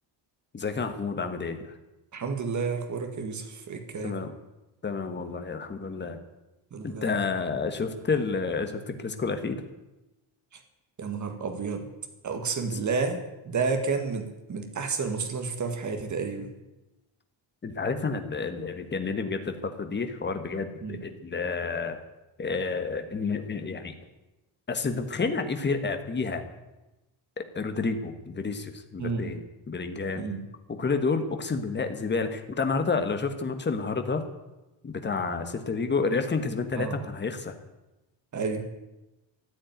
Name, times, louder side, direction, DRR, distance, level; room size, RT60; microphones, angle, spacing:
voice 1, 0.5-1.7 4.0-4.3 4.8-6.2 6.8-9.6 17.6-22.0 22.4-24.0 24.7-26.4 27.4-30.3 30.7-34.2 34.8-37.5, left 4 dB, 20° left, 7 dB, 1.3 m, -30 dB
voice 2, 2.1-4.2 6.7-7.2 11.0-11.9 12.2-16.5 20.8-21.0 29.0-29.4 30.2-30.4 36.8-37.0 38.3-38.6, right 4 dB, 35° right, 6 dB, 1.9 m, -31 dB
14.5 x 8.8 x 9.2 m, 1.0 s
cardioid pair, 175°, 48 cm